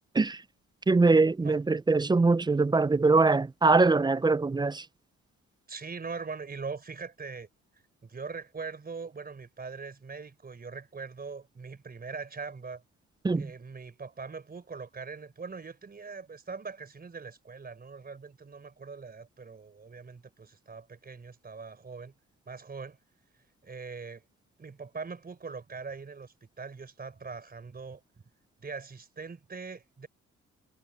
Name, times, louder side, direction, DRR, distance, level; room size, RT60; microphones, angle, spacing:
voice 1, 0.9-4.8 13.2-13.5, right 3 dB, 15° right, 0.5 m, -23 dB
voice 2, 5.7-7.5 8.0-12.8 13.3-22.1 22.5-23.0 23.6-24.2 24.6-28.0 28.6-30.1, right 4 dB, 30° right, 4.2 m, -41 dB
cardioid pair, 90°, 30 cm